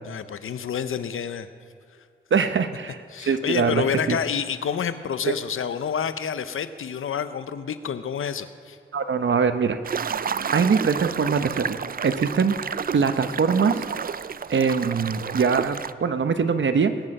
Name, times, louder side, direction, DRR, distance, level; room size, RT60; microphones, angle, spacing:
voice 1, 0.0-1.5 3.1-8.8, left 7 dB, 85° left, 12 dB, 0.7 m, -28 dB
voice 2, 2.3-4.2 5.3-5.4 8.9-9.8 10.5-13.8 14.5-16.9, right 5 dB, 65° right, 9 dB, 0.9 m, -23 dB
sound 1, 9.8-15.9, right 7 dB, 45° right, 0.4 m, -30 dB
20.0 x 9.9 x 5.4 m, 2.3 s
cardioid pair, 55°, 21 cm